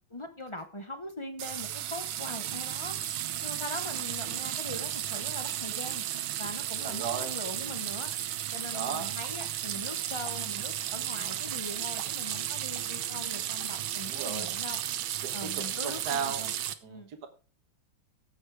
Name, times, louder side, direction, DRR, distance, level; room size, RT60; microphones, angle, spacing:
voice 1, 0.1-3.0 3.4-6.0 6.4-8.1 8.5-14.8 15.3-16.5 16.9-17.1, left 1 dB, 25° left, 8 dB, 0.7 m, -41 dB
sound 1, 1.4-16.7, right 11 dB, 70° right, 1.5 m, -34 dB
voice 2, 6.8-7.4 8.7-9.1 14.1-14.5 15.2-16.5 16.8-17.3, right 7 dB, 50° right, 5 dB, 1.7 m, -36 dB
15.0 x 6.4 x 4.8 m, 0.35 s
omnidirectional pair, 2.4 m